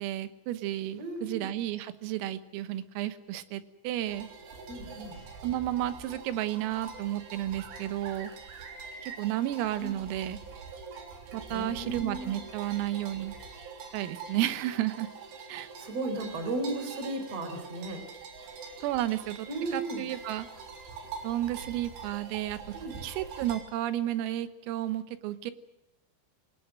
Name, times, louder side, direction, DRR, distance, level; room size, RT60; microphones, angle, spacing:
voice 1, 0.0-4.3 5.4-8.3 9.0-10.4 11.3-13.4 13.9-15.1 15.5-15.7 18.8-19.5 19.7-20.5 21.2-22.8 23.0-25.5, right 13 dB, 90° right, 12 dB, 3.9 m, -32 dB
voice 2, 1.0-1.5 4.7-5.2 9.8-10.0 11.5-12.4 15.8-18.0 19.5-20.0 22.7-23.0, right 2 dB, 35° right, 8 dB, 4.4 m, -35 dB
sound 1, 4.0-23.6, right 5 dB, 70° right, 5.7 m, -44 dB
26.5 x 19.5 x 7.7 m, 0.85 s
omnidirectional pair, 5.9 m